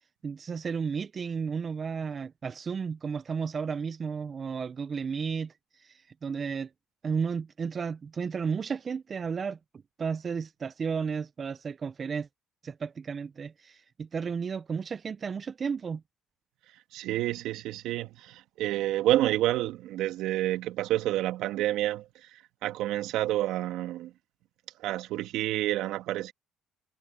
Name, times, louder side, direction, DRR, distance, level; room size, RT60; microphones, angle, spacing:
voice 1, 0.2-6.7 7.0-9.6 10.0-12.3 12.6-16.0, right 6 dB, 40° right, 1.1 m, -33 dB
voice 2, 16.9-24.1 24.8-26.3, right 15 dB, 75° right, 2.0 m, -29 dB
supercardioid pair, 65°, 0 cm